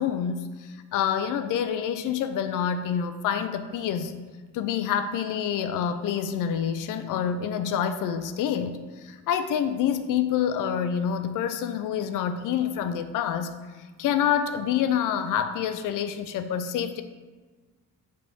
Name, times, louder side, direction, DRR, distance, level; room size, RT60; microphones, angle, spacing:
voice 1, 0.0-4.2 4.5-13.5 14.0-17.0, left 8 dB, 85° left, 9 dB, 0.5 m, -27 dB
5.2 x 3.4 x 5.5 m, 1.3 s
cardioid pair, 105°, 31 cm